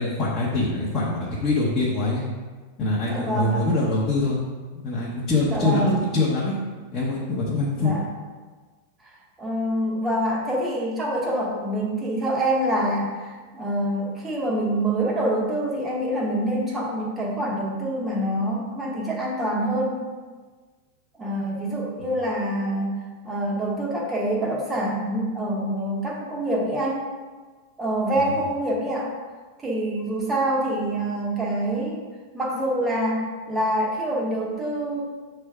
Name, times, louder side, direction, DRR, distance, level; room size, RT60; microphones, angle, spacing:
voice 1, 0.0-2.2 2.8-4.4 4.8-6.6 6.9-7.9 28.1-28.3, left 2 dB, 20° left, -8 dB, 0.8 m, -24 dB
voice 2, 3.1-3.6 5.5-6.0 7.7-8.0 9.0-9.1 9.4-20.0 21.2-23.0 23.2-27.1 27.8-29.1 29.6-32.0 32.3-35.0, right 1 dB, 10° right, -3 dB, 0.9 m, -26 dB
5.9 x 3.3 x 4.8 m, 1.4 s
supercardioid pair, 175°, 0 cm